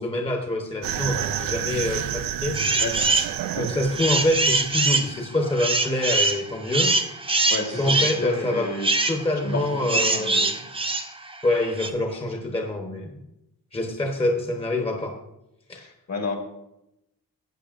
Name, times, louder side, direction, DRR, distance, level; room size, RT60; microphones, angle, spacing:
voice 1, 0.0-2.6 3.6-6.9 7.8-8.7 9.1-10.6 11.4-13.2 13.7-15.1 15.7-15.8, left 1 dB, 15° left, 2 dB, 1.1 m, -26 dB
sound 1, 0.8-5.1, right 11 dB, 80° right, 0.5 m, -30 dB
sound 2, 2.5-3.3 3.7-11.9, right 2 dB, 15° right, 0.6 m, -24 dB
voice 2, 7.5-8.9 9.4-10.4 15.7-16.4, left 2 dB, 50° left, 3 dB, 1.7 m, -30 dB
15.0 x 8.3 x 2.5 m, 0.86 s
wide cardioid pair, 105°, 34 cm